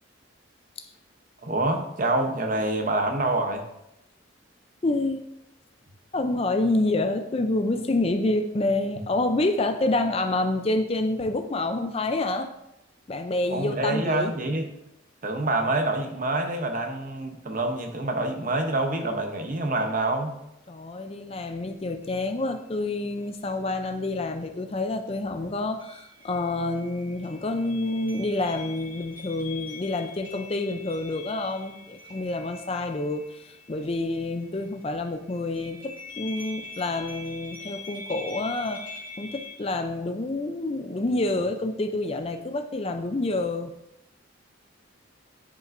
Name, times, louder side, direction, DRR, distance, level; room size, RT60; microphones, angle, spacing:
voice 1, 1.4-3.7 13.5-14.7 15.2-20.4, right 2 dB, 40° right, 4 dB, 0.8 m, -26 dB
voice 2, 4.8-5.2 6.1-12.5 13.1-14.3 20.7-43.7, left 2 dB, 30° left, 6 dB, 0.4 m, -28 dB
sound 1, 21.3-21.4 22.0-22.6 25.8-34.9 35.3-39.5, left 4 dB, 10° right, 2.1 m, -44 dB
10.5 x 5.2 x 2.6 m, 0.84 s
head